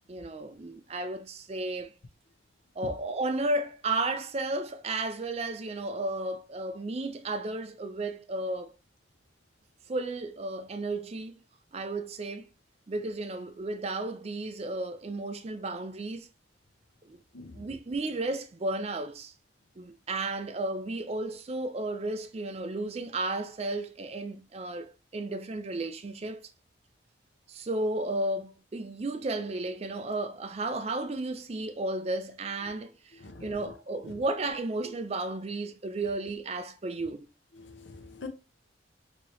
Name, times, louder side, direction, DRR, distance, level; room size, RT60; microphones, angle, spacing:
voice 1, 0.1-1.9 2.8-8.7 9.9-11.4 11.7-12.5 12.9-16.3 17.1-17.2 17.5-19.3 19.8-26.4 27.5-37.3, right 2 dB, 35° right, 0.4 m, -33 dB
voice 2, 37.6-38.3, left 3 dB, 70° left, 0.7 m, -45 dB
3.8 x 2.9 x 3.0 m
head